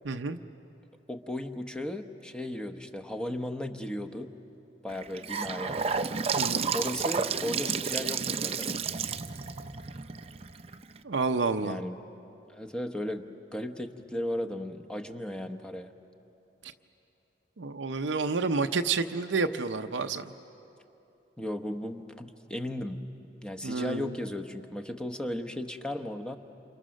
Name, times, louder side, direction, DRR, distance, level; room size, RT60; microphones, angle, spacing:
voice 1, 0.0-0.4 6.4-6.7 11.0-11.8 17.6-20.3 23.6-24.1, right 4 dB, 70° right, 6 dB, 0.7 m, -29 dB
voice 2, 1.1-4.3 4.8-5.8 6.7-8.8 11.6-12.0 12.5-13.2 13.5-15.9 21.4-23.0 23.4-26.4, left 1 dB, 5° left, 4 dB, 0.9 m, -35 dB
Gurgling / Sink (filling or washing) / Bathtub (filling or washing), 4.9-11.0, right 5 dB, 35° right, 0.6 m, -31 dB
28.5 x 28.0 x 6.4 m, 2.9 s
head